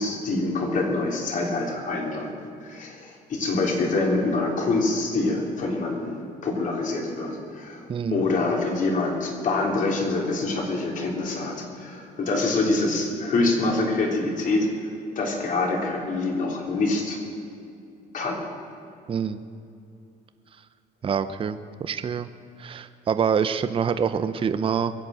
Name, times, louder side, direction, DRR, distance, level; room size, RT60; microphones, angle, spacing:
voice 1, 0.0-2.3 2.6-7.8 8.1-14.7 15.1-17.2 18.1-18.4, left 2 dB, 50° left, 0 dB, 3.5 m, -25 dB
voice 2, 7.9-8.2 19.1-19.4 21.0-22.3 22.6-24.9, right 7 dB, 30° right, 11 dB, 0.6 m, -26 dB
22.5 x 8.1 x 7.7 m, 2.6 s
cardioid pair, 110°, 17 cm